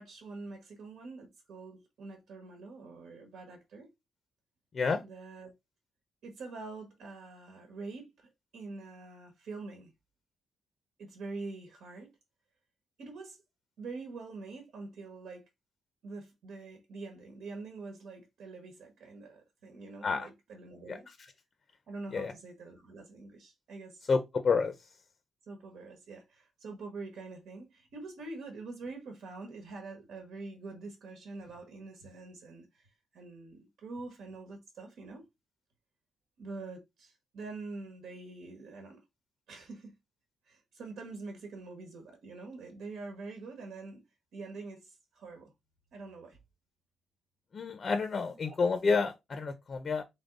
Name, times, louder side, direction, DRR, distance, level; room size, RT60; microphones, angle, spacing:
voice 1, 0.0-3.9 5.0-5.5 6.2-9.9 11.0-12.2 13.0-13.4 13.8-15.5 16.0-21.1 21.9-24.0 25.5-35.2 36.4-39.0 39.5-39.9 40.4-44.0 44.3-45.5 45.9-46.4 48.3-48.6, right 3 dB, 85° right, 1.4 m, -45 dB
voice 2, 24.1-24.7 47.5-50.0, left 4 dB, 35° left, 0.5 m, -29 dB
3.6 x 3.5 x 3.9 m
wide cardioid pair, 175°, 0 cm